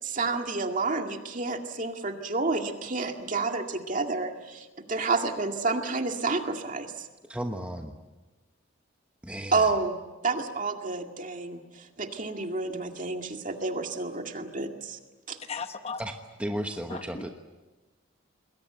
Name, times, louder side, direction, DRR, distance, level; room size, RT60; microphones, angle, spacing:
voice 1, 0.0-7.1 9.5-10.0 10.2-15.0 15.3-15.4, right 3 dB, 40° right, 4 dB, 2.2 m, -30 dB
voice 2, 7.3-7.9 9.2-9.7 16.0-16.1 16.4-17.3, equal, 5° right, 4 dB, 1.2 m, -34 dB
voice 3, 15.5-16.0 16.9-17.3, left 5 dB, 30° left, 8 dB, 1.0 m, -36 dB
27.5 x 21.5 x 8.1 m, 1.2 s
head